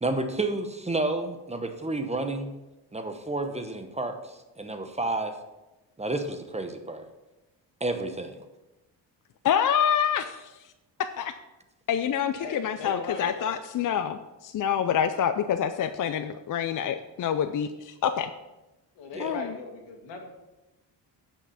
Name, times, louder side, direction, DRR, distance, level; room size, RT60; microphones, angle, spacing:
voice 1, 0.0-2.5 2.9-5.3 6.0-7.0 7.8-8.5 19.1-19.3, right 2 dB, 15° right, 7 dB, 0.9 m, -30 dB
voice 2, 9.4-10.5 11.0-11.3 11.9-18.3 19.2-19.6, left 8 dB, 50° left, 9 dB, 0.5 m, -27 dB
voice 3, 12.4-13.6 19.0-20.3, left 3 dB, 90° left, 3 dB, 1.9 m, -38 dB
9.3 x 5.9 x 5.7 m, 1.0 s
cardioid pair, 105°, 43 cm